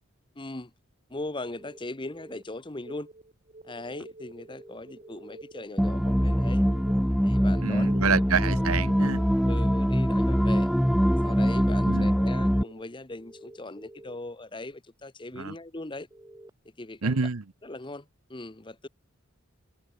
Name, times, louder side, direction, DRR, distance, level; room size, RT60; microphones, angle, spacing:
voice 1, 0.3-0.7 1.1-3.1 3.6-6.6 7.2-8.7 9.4-10.7 11.2-16.1 16.8-17.2 17.6-18.9, left 2 dB, 20° left, 1.0 m, -39 dB
sound 1, 1.4-2.4 4.4-5.4 7.3-8.3 10.2-11.2 13.2-14.2 16.1-16.5, right 1 dB, 15° right, 5.5 m, -50 dB
sound 2, 2.8-12.8, right 2 dB, 35° right, 1.0 m, -49 dB
sound 3, 5.8-12.6, equal, ahead, 0.3 m, -23 dB
voice 2, 7.6-9.2 11.9-12.1 15.3-15.5 17.0-17.4, right 5 dB, 85° right, 0.9 m, -27 dB
head